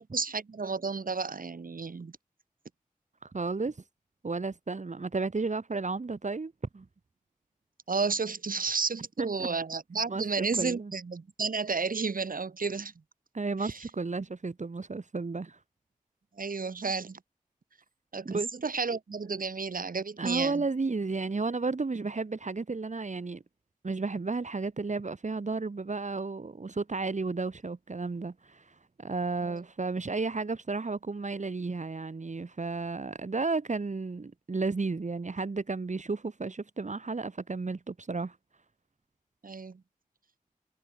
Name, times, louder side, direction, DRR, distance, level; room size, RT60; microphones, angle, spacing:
voice 1, 0.0-2.1 7.9-12.9 13.6-13.8 16.4-17.2 18.1-20.6 29.4-29.6 39.4-39.8, right 4 dB, 85° right, 4.0 m, -32 dB
voice 2, 3.2-3.8 4.2-6.9 9.2-9.5 10.1-10.9 13.3-15.6 18.3-18.5 20.2-23.4 23.8-38.4, right 3 dB, 60° right, 2.0 m, -33 dB
wide cardioid pair, 50°, 14 cm